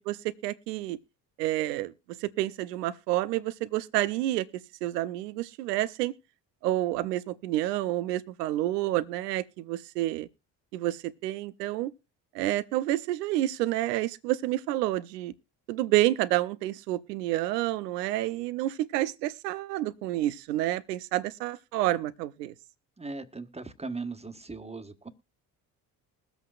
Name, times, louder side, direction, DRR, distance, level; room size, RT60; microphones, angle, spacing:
voice 1, 0.1-1.0 1.4-1.9 2.2-4.5 4.8-6.1 6.6-10.3 10.7-11.9 12.3-15.3 15.7-22.5, right 15 dB, 90° right, 0.7 m, -29 dB
voice 2, 23.0-25.1, right 3 dB, 15° right, 1.4 m, -38 dB
21.0 x 8.1 x 2.4 m
hypercardioid pair, 55°, 46 cm